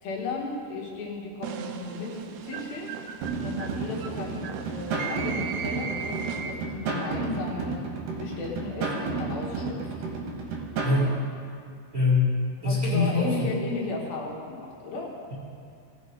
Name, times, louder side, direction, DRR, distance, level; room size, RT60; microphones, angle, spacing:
voice 1, 0.0-2.9 3.4-7.8 8.2-9.9 12.6-15.1, left 3 dB, 70° left, -2 dB, 2.9 m, -35 dB
sound 1, 1.4-6.8, right 7 dB, 90° right, 1.9 m, -37 dB
sound 2, 3.2-11.0, right 3 dB, 65° right, 2.6 m, -32 dB
voice 2, 10.8-11.1 11.9-12.3 12.6-13.5, left 3 dB, 30° right, -7 dB, 1.8 m, -23 dB
17.5 x 7.0 x 5.0 m, 2.3 s
omnidirectional pair, 4.8 m